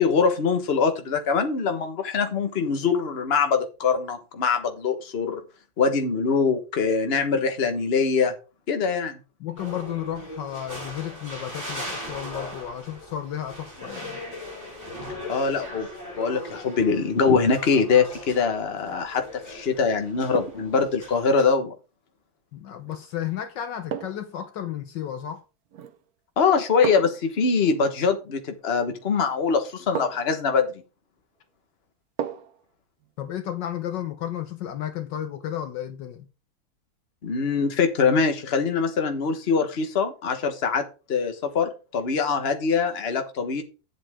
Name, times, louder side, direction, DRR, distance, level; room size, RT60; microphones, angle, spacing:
voice 1, 0.0-5.4 5.8-8.3 8.7-9.2 15.3-15.9 16.2-21.7 26.4-30.7 37.2-40.8 41.1-43.6, left 5 dB, 35° left, 1.3 m, -23 dB
voice 2, 9.4-14.2 22.5-25.4 33.2-36.3, left 10 dB, 70° left, 1.3 m, -33 dB
sound 1, 9.6-21.5, left 1 dB, 10° right, 6.3 m, -39 dB
sound 2, 18.8-19.1 20.3-20.8 22.8-23.0 23.9-24.4 25.7-26.1 26.8-27.3 29.0-29.1 30.0-30.4 32.2-32.6 33.0-33.1, right 8 dB, 60° right, 1.1 m, -34 dB
11.0 x 7.9 x 3.6 m
omnidirectional pair, 2.1 m